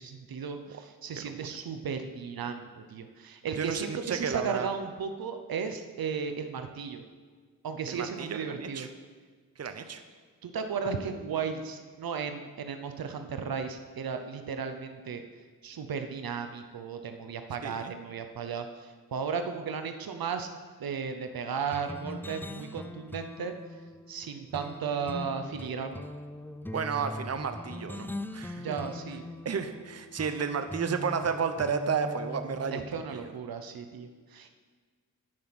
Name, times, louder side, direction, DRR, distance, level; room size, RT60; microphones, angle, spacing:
voice 1, 0.0-7.0 7.6-8.9 10.4-15.2 15.6-20.5 20.8-23.5 24.1-26.0 28.6-29.2 32.7-34.6, right 6 dB, 85° right, 7 dB, 0.8 m, -35 dB
voice 2, 3.6-4.7 7.9-8.9 9.6-10.0 17.6-17.9 26.7-28.1 28.3-28.7 29.4-32.8 33.1-33.3, right 6 dB, 45° right, 8 dB, 0.7 m, -32 dB
sound 1, 21.7-33.0, left 1 dB, 5° left, 0.4 m, -41 dB
10.5 x 5.8 x 6.1 m, 1.5 s
wide cardioid pair, 80°, 35 cm